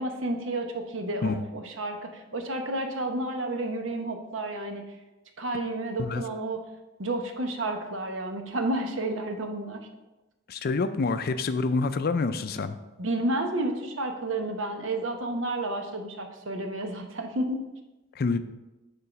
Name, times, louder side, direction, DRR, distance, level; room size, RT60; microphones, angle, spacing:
voice 1, 0.0-4.8 5.4-6.6 7.0-9.9 13.0-17.6, right 2 dB, 80° right, 4 dB, 0.9 m, -31 dB
voice 2, 10.5-12.8 18.2-18.4, left 4 dB, 50° left, 11 dB, 0.4 m, -27 dB
7.0 x 3.8 x 5.7 m, 1.0 s
head